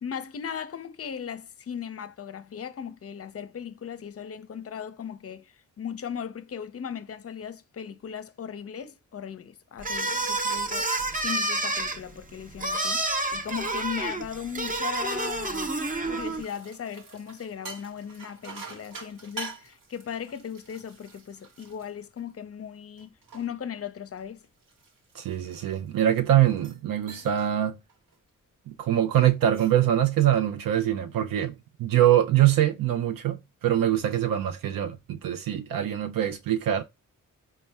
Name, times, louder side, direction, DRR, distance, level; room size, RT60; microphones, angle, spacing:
voice 1, 0.0-10.9 11.2-15.7 16.1-24.4, left 8 dB, 45° left, 0.6 m, -37 dB
sound 1, 9.8-16.4, right 2 dB, 25° right, 0.7 m, -29 dB
sound 2, 16.0-22.5 23.0-26.0 26.5-26.8 27.1-27.5 27.9-28.2 29.3-29.9, right 3 dB, 70° right, 1.2 m, -46 dB
voice 2, 25.1-27.8 28.7-36.8, right 11 dB, 90° right, 0.5 m, -24 dB
4.1 x 2.2 x 3.3 m
cardioid pair, 60°, 33 cm